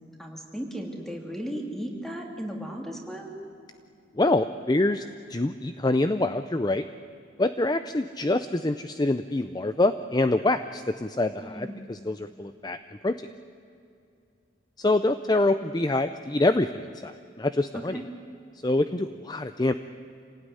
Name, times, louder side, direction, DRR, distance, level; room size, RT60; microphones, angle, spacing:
voice 1, 0.2-3.3 11.4-11.9 17.9-18.0, equal, ahead, 1 dB, 3.0 m, -36 dB
voice 2, 4.2-5.0 5.3-6.8 7.4-12.8 13.0-13.2 14.8-18.0 18.6-19.7, left 2 dB, 20° left, 11 dB, 0.5 m, -25 dB
27.0 x 18.0 x 9.9 m, 2.5 s
head